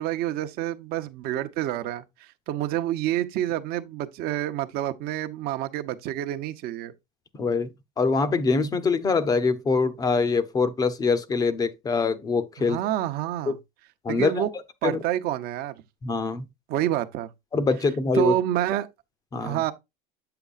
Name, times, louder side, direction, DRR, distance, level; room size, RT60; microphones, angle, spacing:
voice 1, 0.0-2.0 2.5-6.9 12.6-13.6 14.1-14.5 14.8-15.7 16.7-17.3 18.1-18.9 19.4-19.7, right 13 dB, 50° right, 0.8 m, -28 dB
voice 2, 7.3-12.8 13.5-13.6 14.0-14.5 14.8-15.0 16.0-16.4 17.5-18.4 19.3-19.6, left 4 dB, 20° left, 0.7 m, -24 dB
8.2 x 6.8 x 2.5 m
cardioid pair, 150°, 20 cm